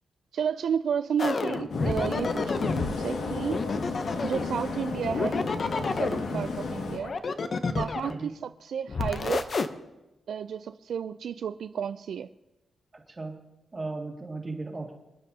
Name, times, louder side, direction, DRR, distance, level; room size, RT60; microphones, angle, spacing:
voice 1, 0.3-3.6 4.2-7.1 7.7-9.5 10.3-12.3, right 7 dB, 70° right, 11 dB, 0.3 m, -32 dB
sound 1, 1.2-3.0 3.5-4.6 5.0-6.3 7.0-8.2 8.9-9.7, left 4 dB, 40° left, 0.7 m, -29 dB
sound 2, 1.7-7.0, left 3 dB, 85° left, 1.7 m, -33 dB
voice 2, 12.9-13.3 13.7-14.9, right 3 dB, 25° right, 0 dB, 2.1 m, -36 dB
26.0 x 10.0 x 2.8 m, 0.99 s
wide cardioid pair, 170°, 0 cm